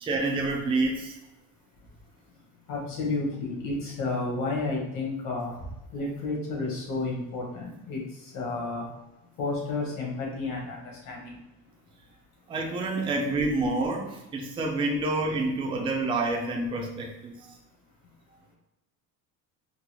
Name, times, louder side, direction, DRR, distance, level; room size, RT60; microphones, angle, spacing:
voice 1, 0.0-1.1 12.5-17.3, right 2 dB, 15° right, 1 dB, 0.4 m, -28 dB
voice 2, 2.7-8.9 9.4-11.4, left 3 dB, 60° left, -1 dB, 1.4 m, -31 dB
3.8 x 2.2 x 3.0 m, 0.94 s
cardioid pair, 135°, 38 cm